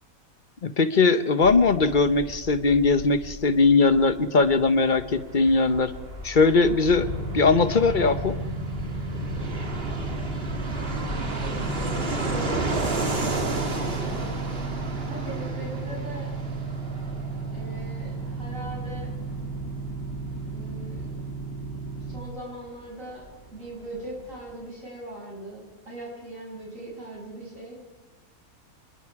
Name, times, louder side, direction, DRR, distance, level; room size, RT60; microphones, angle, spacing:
voice 1, 0.6-5.9 6.2-7.1 7.3-8.4, left 4 dB, 40° left, 11 dB, 1.0 m, -20 dB
sound 1, 1.4-13.0, left 2 dB, 25° left, 1.7 m, -41 dB
Fixed-wing aircraft airplane, 4.9-23.3 23.6-23.7 23.9-24.6, right 2 dB, 40° right, 2.2 m, -34 dB
sound 2, 7.0-22.2, right 3 dB, 65° left, 2.6 m, -33 dB
voice 2, 7.5-7.9 11.1-12.9 13.5-14.2 15.0-16.3 17.5-19.1 20.5-21.1 22.0-23.2 23.5-27.8, right 1 dB, 60° right, -3 dB, 7.3 m, -40 dB
26.5 x 22.0 x 4.8 m, 1.2 s
omnidirectional pair, 1.5 m